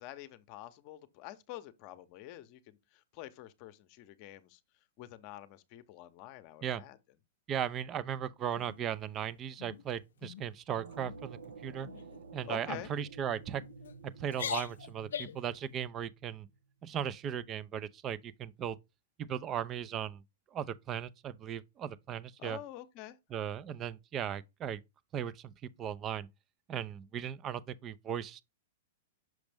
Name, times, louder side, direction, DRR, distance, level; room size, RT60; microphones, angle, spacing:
voice 1, 0.0-2.8 3.1-4.6 5.0-7.0 12.5-12.9 22.4-23.2, left 14 dB, 45° left, 0.7 m, -47 dB
voice 2, 7.5-11.9 12.3-13.6 14.0-16.5 16.8-18.8 19.2-20.2 20.5-22.6 23.3-24.8 25.1-25.5 25.8-26.3 26.7-28.5, right 9 dB, 30° right, 0.4 m, -37 dB
sound 1, 8.5-9.2 9.6-9.8 10.2-10.5 10.9-11.2 11.8-12.2 12.7-12.9 13.6-13.9 14.3-15.5, left 8 dB, 80° left, 0.5 m, -41 dB
sound 2, 10.7-16.6, right 4 dB, 85° right, 0.6 m, -51 dB
6.2 x 5.0 x 3.4 m
hypercardioid pair, 125°, 0 cm